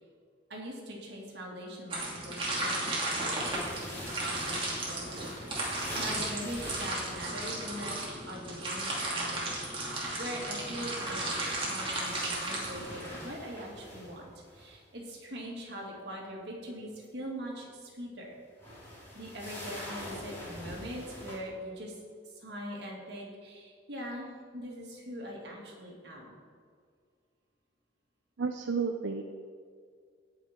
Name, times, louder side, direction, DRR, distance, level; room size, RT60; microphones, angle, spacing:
voice 1, 0.5-9.7 10.2-18.4 19.1-22.0 22.3-26.4, equal, 60° right, -3 dB, 2.5 m, -42 dB
sound 1, 1.9-13.3, right 2 dB, 30° right, 2.5 m, -35 dB
sound 2, 3.4-7.9 10.7-14.8 18.5-21.4, left 1 dB, 15° left, 3.1 m, -45 dB
voice 2, 28.4-29.2, right 5 dB, 80° right, 5 dB, 0.6 m, -31 dB
17.5 x 5.9 x 4.5 m, 2.1 s
head